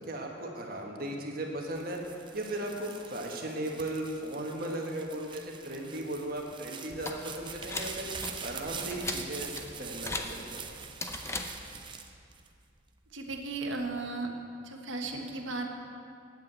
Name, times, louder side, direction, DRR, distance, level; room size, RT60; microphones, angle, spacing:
voice 1, 0.0-2.0 2.3-8.0 8.4-10.6, right 1 dB, 50° right, 0 dB, 1.5 m, -37 dB
sound 1, 1.6-13.0 13.5-14.1, right 6 dB, 25° right, 0.6 m, -44 dB
sound 2, 6.9-11.9, left 2 dB, 15° left, 0.6 m, -40 dB
voice 2, 13.1-14.3 14.6-15.7, right 3 dB, 80° right, 3 dB, 1.3 m, -35 dB
9.3 x 8.5 x 8.2 m, 2.4 s
head